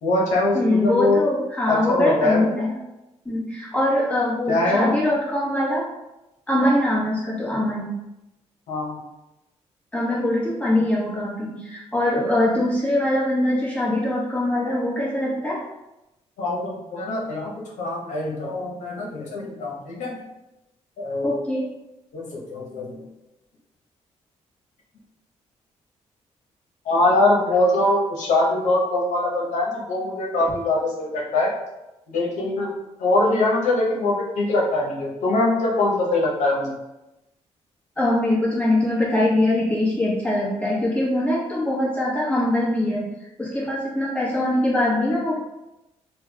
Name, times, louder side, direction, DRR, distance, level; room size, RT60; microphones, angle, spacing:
voice 1, 0.0-1.2 1.7-2.5 4.5-4.9 8.7-9.0 16.4-20.2 21.0-21.3 22.1-23.1 26.8-31.5 32.1-32.7 33.0-36.8, left 2 dB, 80° left, -3 dB, 0.8 m, -23 dB
voice 2, 0.5-2.8 3.2-5.9 6.5-7.9 9.9-15.6 21.2-21.7 38.0-43.1 43.4-45.4, left 1 dB, 10° left, -5 dB, 1.2 m, -22 dB
3.3 x 2.3 x 3.3 m, 0.95 s
cardioid pair, 85°, 12 cm